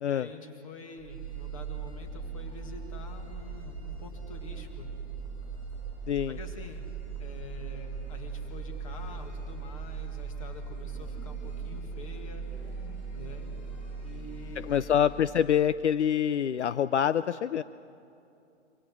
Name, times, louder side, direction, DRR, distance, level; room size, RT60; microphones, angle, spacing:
voice 1, 0.1-5.0 6.3-6.9 7.2-12.4 13.1-13.5 14.0-15.0, left 3 dB, 30° left, 5 dB, 1.9 m, -47 dB
sound 1, 1.0-15.8, right 5 dB, 20° right, 0.8 m, -39 dB
sound 2, 1.1-15.5, left 1 dB, 5° left, 4.3 m, -53 dB
voice 2, 6.1-6.4 14.7-17.6, left 9 dB, 70° left, 15 dB, 0.6 m, -26 dB
26.5 x 25.0 x 6.1 m, 2.6 s
hypercardioid pair, 175°, 36 cm